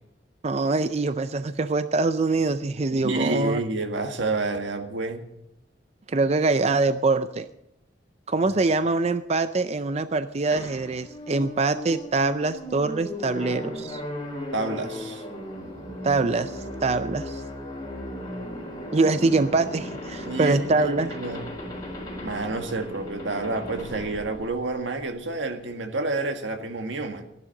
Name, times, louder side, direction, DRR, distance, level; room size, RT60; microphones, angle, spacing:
voice 1, 0.4-3.6 6.1-7.5 8.3-14.0 16.0-17.4 18.9-21.1, right 3 dB, 35° right, 11 dB, 0.5 m, -24 dB
voice 2, 2.9-5.2 8.4-8.5 14.5-15.2 20.2-21.5 22.2-27.2, right 2 dB, 80° right, 6 dB, 1.7 m, -29 dB
sound 1, 10.5-25.2, left 1 dB, 20° left, 4.3 m, -36 dB
15.5 x 11.0 x 6.5 m, 0.83 s
head